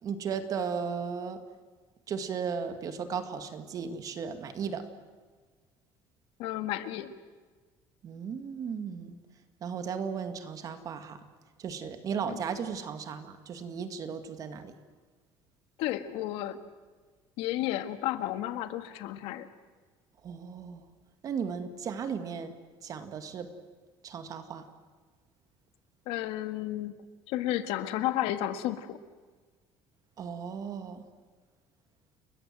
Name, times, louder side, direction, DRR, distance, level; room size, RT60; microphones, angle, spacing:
voice 1, 0.0-1.4 2.1-4.8 8.0-9.2 9.6-11.2 11.6-14.7 20.2-20.8 21.2-22.5 22.8-23.5 24.0-24.6 30.2-31.0, right 6 dB, 35° right, 8 dB, 2.1 m, -35 dB
voice 2, 6.4-7.1 12.3-12.4 15.8-16.6 17.4-19.5 26.1-27.0 27.3-29.0, left 13 dB, 80° left, 10 dB, 1.9 m, -32 dB
30.0 x 22.5 x 7.7 m, 1.4 s
cardioid pair, 170°, 10 cm